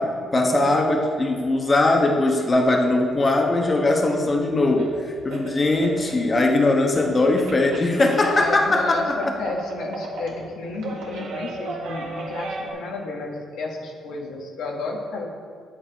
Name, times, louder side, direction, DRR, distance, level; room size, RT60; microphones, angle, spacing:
voice 1, 0.0-4.9 5.2-9.3, left 2 dB, 30° left, 1 dB, 1.1 m, -20 dB
sound 1, 4.2-4.3 4.7-6.6 6.9-12.7, right 2 dB, 90° right, 1.7 m, -35 dB
voice 2, 8.2-15.3, left 2 dB, 85° left, 0 dB, 1.4 m, -32 dB
8.7 x 7.4 x 5.0 m, 2.2 s
cardioid pair, 90°, 0 cm